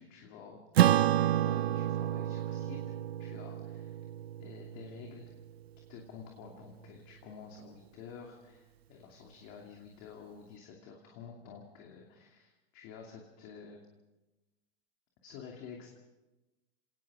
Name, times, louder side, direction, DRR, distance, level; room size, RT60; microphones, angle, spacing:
voice 1, 0.0-2.8 3.2-4.0 4.4-5.3 5.9-13.8 15.2-15.9, left 6 dB, 40° left, 0 dB, 2.7 m, -50 dB
Acoustic guitar / Strum, 0.8-5.5, right 12 dB, 90° right, 0.7 m, -29 dB
27.5 x 19.0 x 5.0 m, 1.1 s
supercardioid pair, 150°, 30 cm